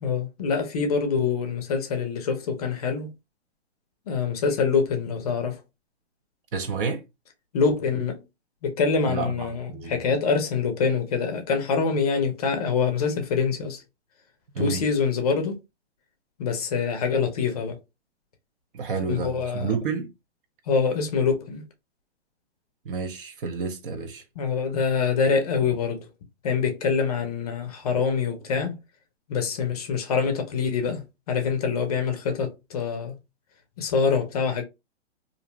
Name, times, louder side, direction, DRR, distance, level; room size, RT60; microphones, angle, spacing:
voice 1, 0.0-3.1 4.1-5.6 7.5-8.2 8.6-13.8 14.6-15.6 16.4-17.8 19.1-19.7 20.7-21.6 24.4-26.1 26.4-28.8 29.3-33.2 33.8-34.6, left 5 dB, 35° left, 0.5 m, -25 dB
voice 2, 6.5-7.1 9.1-10.0 14.5-14.8 18.7-20.1 22.8-24.2, right 5 dB, 50° right, 0.6 m, -30 dB
2.5 x 2.1 x 3.0 m
hypercardioid pair, 150°, 34 cm